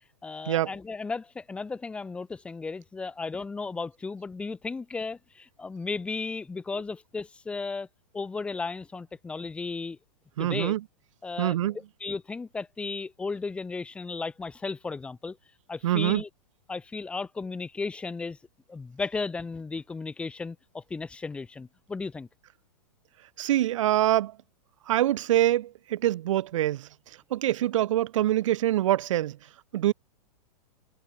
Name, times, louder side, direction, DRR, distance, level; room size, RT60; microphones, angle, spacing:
voice 1, 0.2-7.9 8.1-10.0 10.4-10.8 11.2-15.4 15.7-16.3 16.7-18.4 18.7-22.3, left 4 dB, 5° left, 1.7 m, -35 dB
voice 2, 10.4-10.8 11.4-11.8 15.8-16.2 23.4-24.3 24.9-26.9 27.3-29.4 29.7-29.9, right 13 dB, 50° right, 0.7 m, -24 dB
supercardioid pair, 175°, 20 cm